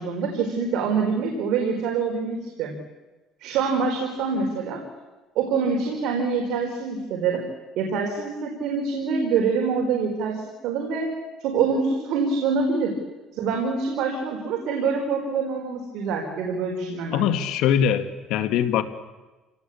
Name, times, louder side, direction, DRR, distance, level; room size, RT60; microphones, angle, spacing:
voice 1, 0.0-2.7 3.4-4.8 5.3-7.4 7.8-10.4 10.6-11.1 11.4-12.9 13.3-17.2, right 5 dB, 70° right, 1 dB, 4.5 m, -25 dB
voice 2, 17.1-18.8, left 9 dB, 70° left, 8 dB, 2.0 m, -22 dB
28.0 x 18.5 x 8.6 m, 1.2 s
cardioid pair, 130°, 0 cm